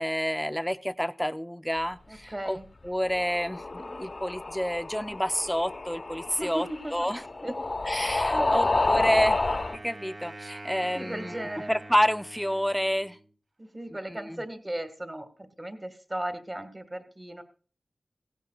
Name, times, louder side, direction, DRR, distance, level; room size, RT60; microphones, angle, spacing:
voice 1, 0.0-2.6 2.8-7.2 7.9-9.4 9.7-13.2 14.1-14.4, equal, 5° left, 12 dB, 0.6 m, -29 dB
voice 2, 2.1-2.7 6.3-7.1 7.4-7.6 7.9-9.2 10.8-11.8 13.6-17.4, right 1 dB, 20° right, 7 dB, 1.8 m, -37 dB
sound 1, 3.0-9.8, left 2 dB, 50° left, 1.0 m, -30 dB
Wind instrument woodwind instrument, 9.0-13.3, right 2 dB, 50° right, 3.7 m, -44 dB
16.5 x 15.5 x 2.3 m, 0.40 s
wide cardioid pair, 70°, 0 cm